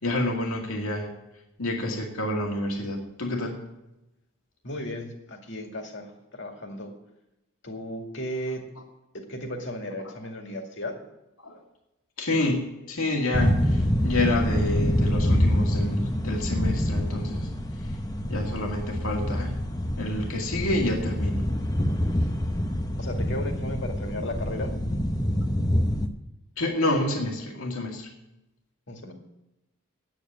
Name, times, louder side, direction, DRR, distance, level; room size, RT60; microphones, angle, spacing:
voice 1, 0.0-1.1 1.6-3.6 11.4-11.5 12.2-17.5 18.3-19.6 20.0-21.5 26.6-28.1, left 1 dB, 80° left, 0 dB, 2.2 m, -28 dB
voice 2, 4.6-6.9 7.6-8.7 9.1-10.9 23.0-24.7 28.9-29.1, left 1 dB, 55° left, 3 dB, 2.2 m, -35 dB
sound 1, 13.3-26.1, equal, 15° left, 0.8 m, -26 dB
9.1 x 8.5 x 9.6 m, 0.92 s
head